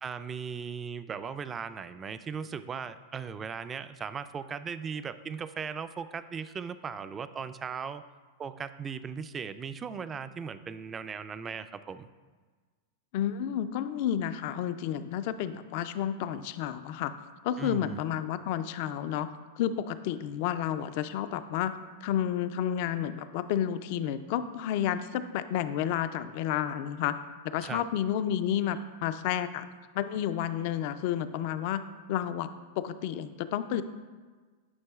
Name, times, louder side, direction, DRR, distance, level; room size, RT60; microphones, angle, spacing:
voice 1, 0.0-8.0 8.4-12.1 17.6-18.0 27.6-27.9, right 6 dB, 25° right, 12 dB, 0.3 m, -38 dB
voice 2, 13.1-17.1 17.4-19.3 19.6-21.7 22.0-27.2 27.4-29.7 29.9-31.8 32.1-32.5 32.8-33.8, left 10 dB, 55° left, 12 dB, 0.3 m, -31 dB
9.6 x 5.4 x 2.3 m, 1.4 s
hypercardioid pair, 115°, 0 cm